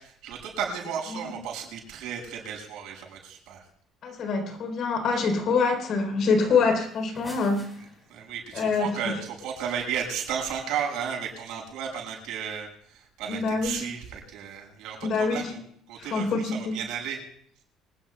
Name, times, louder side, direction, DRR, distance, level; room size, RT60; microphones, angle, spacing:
voice 1, 0.2-3.6 8.1-12.7 13.2-15.6 15.9-17.2, right 7 dB, 75° right, 0 dB, 6.5 m, -33 dB
voice 2, 4.0-7.7 8.5-9.2 13.3-13.9 15.0-15.5 16.0-16.8, left 4 dB, 50° left, 5 dB, 3.7 m, -25 dB
sound 1, 6.8-8.4, left 1 dB, 10° left, 4.9 m, -46 dB
25.5 x 19.0 x 2.3 m, 0.66 s
cardioid pair, 145°, 0 cm